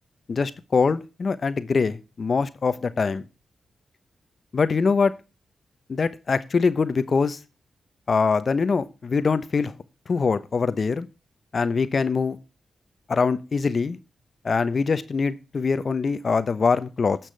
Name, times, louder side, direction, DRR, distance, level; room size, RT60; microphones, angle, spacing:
voice 1, 0.3-3.2 4.5-5.1 5.9-7.4 8.1-9.7 10.1-11.1 11.5-12.4 13.1-14.0 14.4-17.2, left 5 dB, 55° left, 0.9 m, -23 dB
16.0 x 6.0 x 3.3 m
supercardioid pair, 40°, 0 cm